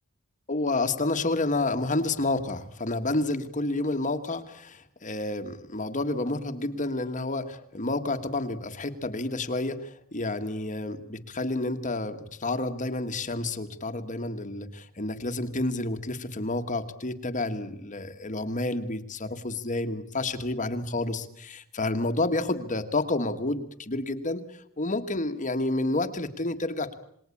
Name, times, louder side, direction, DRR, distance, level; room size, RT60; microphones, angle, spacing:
voice 1, 0.5-26.9, left 2 dB, 35° left, 7 dB, 1.6 m, -30 dB
27.5 x 19.5 x 8.5 m, 0.69 s
head